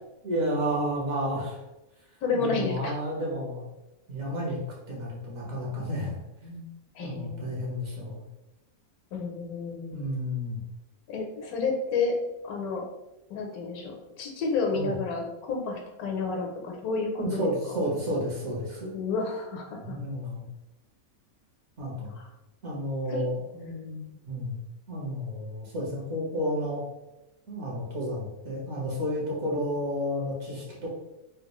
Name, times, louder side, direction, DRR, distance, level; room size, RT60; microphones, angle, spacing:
voice 1, 0.2-1.6 2.3-3.7 4.1-4.6 4.9-6.6 7.0-8.2 9.9-10.6 14.7-14.9 17.2-18.9 19.8-20.4 21.8-22.2 22.6-23.4 24.3-24.6 24.9-26.8 27.5-30.9, equal, 55° right, -3 dB, 1.2 m, -31 dB
voice 2, 2.2-2.9 6.9-7.5 9.1-10.0 11.1-12.2 12.4-12.8 13.3-17.5 18.9-20.0 22.2-22.3 23.1-23.3 23.5-24.2, left 4 dB, 80° left, 2 dB, 1.2 m, -31 dB
3.5 x 2.4 x 3.0 m, 0.95 s
omnidirectional pair, 1.6 m